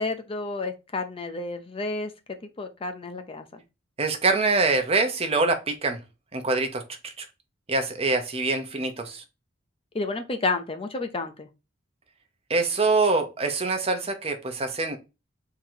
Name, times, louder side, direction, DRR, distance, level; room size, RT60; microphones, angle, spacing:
voice 1, 0.0-2.1 2.6-3.6 9.9-11.5, left 3 dB, 30° left, 0.5 m, -30 dB
voice 2, 4.0-6.0 6.3-7.1 7.7-9.2 12.5-15.0, right 3 dB, 30° right, 0.8 m, -24 dB
3.8 x 2.9 x 4.5 m
head